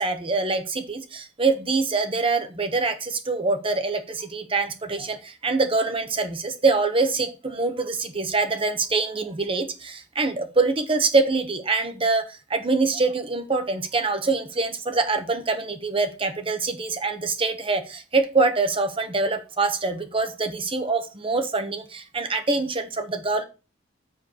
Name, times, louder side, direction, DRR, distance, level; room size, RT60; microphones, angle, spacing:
voice 1, 0.0-23.4, right 3 dB, 25° right, 8 dB, 1.2 m, -24 dB
7.3 x 4.5 x 6.4 m, 0.30 s
head